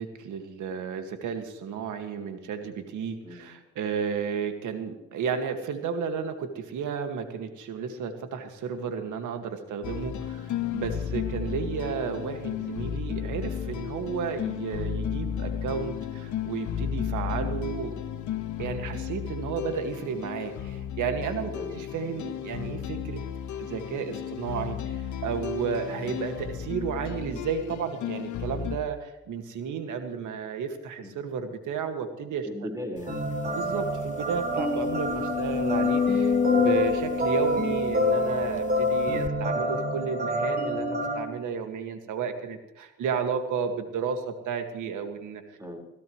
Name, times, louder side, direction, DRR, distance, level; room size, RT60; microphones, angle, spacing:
voice 1, 0.0-17.9 18.6-23.2 23.6-32.5 33.6-45.4, right 6 dB, 80° right, 6 dB, 2.0 m, -33 dB
sound 1, 9.8-28.8, left 9 dB, 75° left, 1.4 m, -34 dB
voice 2, 21.5-21.8 31.0-31.2 32.4-33.6 45.6-45.8, left 1 dB, 10° right, 1 dB, 4.7 m, -39 dB
sound 2, 33.1-41.2, equal, 30° right, 4.5 m, -28 dB
sound 3, 33.2-33.3 33.7-33.8 34.4-38.6 39.2-39.3, left 6 dB, 25° left, 0.5 m, -27 dB
22.0 x 16.0 x 3.2 m, 0.97 s
cardioid pair, 90°, 30 cm